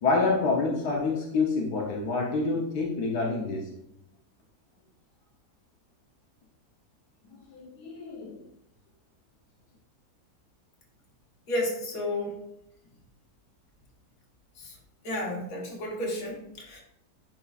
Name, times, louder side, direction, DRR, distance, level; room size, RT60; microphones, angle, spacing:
voice 1, 0.0-3.7 7.3-8.4, left 3 dB, 85° left, -1 dB, 1.5 m, -27 dB
voice 2, 11.5-12.4 14.6-14.7 15.0-16.8, left 1 dB, 65° left, -1 dB, 1.8 m, -32 dB
10.5 x 4.5 x 2.4 m, 0.81 s
omnidirectional pair, 1.7 m